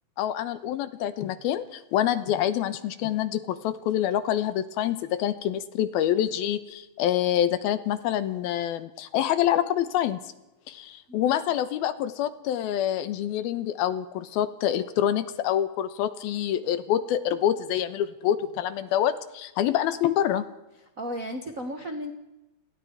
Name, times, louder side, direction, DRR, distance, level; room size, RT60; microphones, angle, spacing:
voice 1, 0.2-10.2 10.7-20.4, left 11 dB, 80° left, 12 dB, 2.9 m, -26 dB
voice 2, 21.0-22.1, equal, 85° right, 5 dB, 0.7 m, -34 dB
29.5 x 20.0 x 4.7 m, 0.97 s
omnidirectional pair, 4.4 m